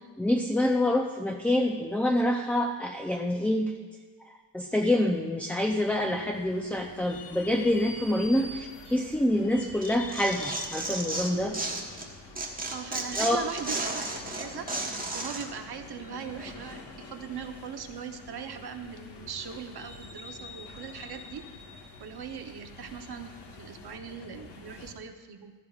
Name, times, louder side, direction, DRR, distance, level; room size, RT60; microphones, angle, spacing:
voice 1, 0.2-3.7 4.5-11.6 13.2-13.4, left 1 dB, 5° left, 3 dB, 0.4 m, -26 dB
sound 1, 5.6-24.9, left 3 dB, 75° left, 1.4 m, -46 dB
Tearing, 9.8-12.1 12.4-15.5, right 2 dB, 20° right, 1.2 m, -33 dB
voice 2, 12.7-14.0 14.3-21.5 22.0-25.5, right 7 dB, 65° right, 6 dB, 0.9 m, -40 dB
15.5 x 13.5 x 2.4 m, 1.4 s
wide cardioid pair, 170°, 42 cm